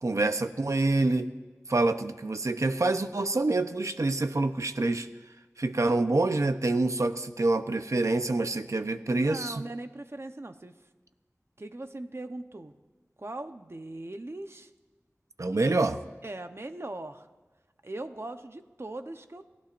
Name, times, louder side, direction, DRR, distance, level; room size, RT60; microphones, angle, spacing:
voice 1, 0.0-1.3 1.7-5.1 5.6-9.6 15.4-16.0, right 2 dB, 75° right, 8 dB, 0.8 m, -26 dB
voice 2, 9.1-10.8 11.6-12.7 13.2-14.7 15.4-15.7 16.2-17.3 17.8-19.5, right 2 dB, 55° right, 7 dB, 1.0 m, -40 dB
29.5 x 16.0 x 2.6 m, 1.3 s
wide cardioid pair, 45°, 5 cm